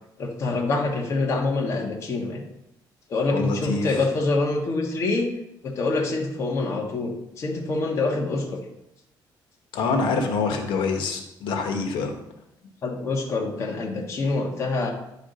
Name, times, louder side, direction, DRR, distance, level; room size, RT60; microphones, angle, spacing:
voice 1, 0.2-2.5 3.1-5.3 5.6-8.6 12.8-14.9, left 3 dB, 35° left, -1 dB, 1.5 m, -26 dB
voice 2, 3.3-4.0 9.7-12.1, left 4 dB, 80° left, 4 dB, 1.5 m, -26 dB
11.0 x 4.9 x 5.1 m, 0.82 s
cardioid pair, 180°, 8 cm